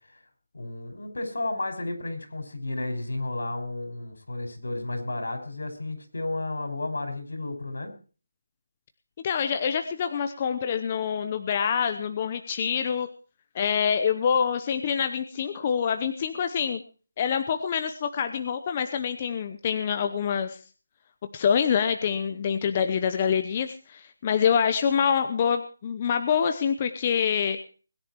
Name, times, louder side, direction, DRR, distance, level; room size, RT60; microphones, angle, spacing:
voice 1, 0.5-7.9, left 2 dB, 80° left, 7 dB, 6.1 m, -32 dB
voice 2, 9.2-13.1 13.5-16.8 17.2-20.6 21.3-27.6, left 7 dB, 20° left, 8 dB, 0.8 m, -26 dB
21.0 x 10.0 x 4.6 m, 0.38 s
figure-of-eight pair, 175°, 0 cm